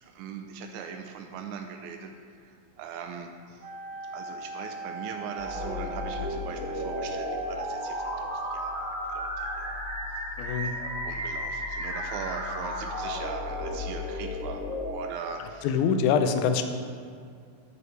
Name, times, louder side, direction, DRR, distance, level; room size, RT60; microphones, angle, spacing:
voice 1, 0.0-2.1 2.4-3.6 4.1-8.8 9.1-9.8 10.6-15.7, right 6 dB, 90° right, 5 dB, 1.7 m, -40 dB
Wind instrument woodwind instrument, 3.6-9.1, right 3 dB, 65° right, 1.4 m, -40 dB
sound 1, 5.4-14.9, left 1 dB, 5° right, 1.7 m, -33 dB
voice 2, 10.4-10.7 15.6-16.6, left 6 dB, 80° left, 8 dB, 1.8 m, -24 dB
9.8 x 9.0 x 3.3 m, 2.2 s
omnidirectional pair, 4.0 m